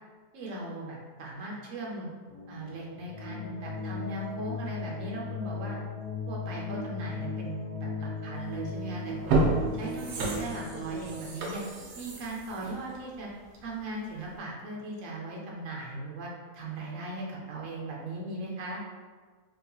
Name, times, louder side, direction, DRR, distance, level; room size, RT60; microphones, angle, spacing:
voice 1, 0.3-2.1 2.5-5.8 6.3-9.4 9.7-11.6 11.9-13.3 13.6-18.8, right 2 dB, 60° right, -3 dB, 1.0 m, -38 dB
sound 1, 2.3-11.1, left 3 dB, 65° left, 1.1 m, -37 dB
sound 2, 8.5-8.7 9.1-13.8 14.2-14.3, right 2 dB, 90° right, 1.2 m, -31 dB
3.6 x 2.8 x 2.3 m, 1.5 s
omnidirectional pair, 1.7 m